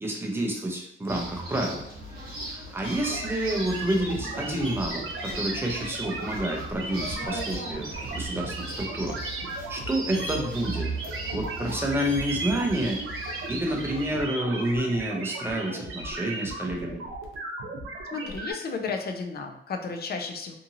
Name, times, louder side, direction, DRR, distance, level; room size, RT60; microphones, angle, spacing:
voice 1, 0.0-1.8 2.4-9.2 9.7-10.9 11.3-13.0 13.5-17.0, right 1 dB, 10° right, 0 dB, 0.6 m, -29 dB
sound 1, 1.1-14.2, right 2 dB, 45° right, 0.9 m, -38 dB
sound 2, 2.6-4.1 4.6-7.7 8.0-8.1 8.4-9.3 10.1-10.8 11.1-11.6 11.9-12.8 13.1-14.2 14.5-15.2, right 2 dB, 30° left, 0.9 m, -41 dB
sound 3, 3.0-18.5, right 2 dB, 80° right, 0.6 m, -36 dB
voice 2, 18.1-20.5, left 4 dB, 50° left, 4 dB, 0.5 m, -33 dB
2.7 x 2.6 x 2.7 m, 0.80 s
wide cardioid pair, 135°, 21 cm